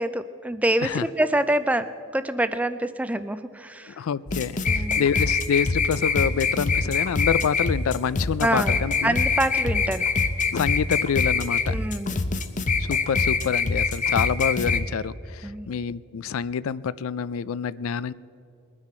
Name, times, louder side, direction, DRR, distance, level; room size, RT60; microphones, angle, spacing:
voice 1, 0.0-4.0 4.6-5.0 8.4-10.1 11.7-12.2 15.4-15.7, right 1 dB, 5° right, 12 dB, 0.3 m, -26 dB
voice 2, 4.0-9.2 10.5-11.8 12.8-18.1, left 7 dB, 70° left, 18 dB, 0.3 m, -27 dB
sound 1, 4.3-14.8, left 4 dB, 35° left, 0.7 m, -24 dB
21.5 x 9.8 x 4.3 m, 2.7 s
head